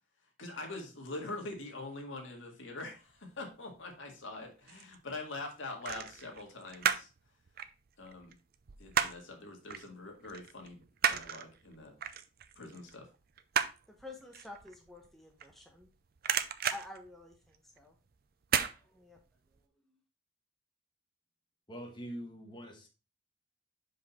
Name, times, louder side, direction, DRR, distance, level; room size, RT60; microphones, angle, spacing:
voice 1, 0.4-7.1 8.0-8.3 8.8-10.8 11.1-11.9 12.6-13.1, left 2 dB, 75° left, 2 dB, 1.8 m, -44 dB
sound 1, 4.3-5.0 5.8-7.2 7.5-9.4 9.7-9.9 10.2-15.9 16.2-17.8 18.4-18.8 19.2-19.3, right 8 dB, 50° right, 0.5 m, -33 dB
voice 2, 14.0-15.9 16.7-17.9 18.8-19.2 19.9-20.0, left 2 dB, ahead, 1 dB, 0.9 m, -49 dB
voice 3, 21.7-22.9, equal, 25° left, 1 dB, 1.5 m, -44 dB
5.6 x 5.1 x 4.1 m, 0.31 s
head